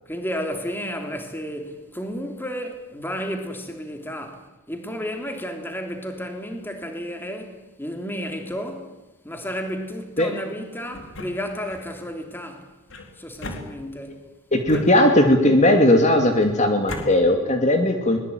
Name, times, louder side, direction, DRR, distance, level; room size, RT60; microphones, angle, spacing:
voice 1, 0.1-9.0 9.2-12.7 13.1-14.2 14.7-14.9, equal, 10° left, 3.3 m, -32 dB
sound 1, 10.9-11.9 12.9-14.2 14.7-15.5 16.3-17.1, left 1 dB, 60° left, 3.9 m, -38 dB
voice 2, 14.5-18.2, left 1 dB, 35° left, 2.6 m, -18 dB
24.0 x 21.5 x 9.4 m
head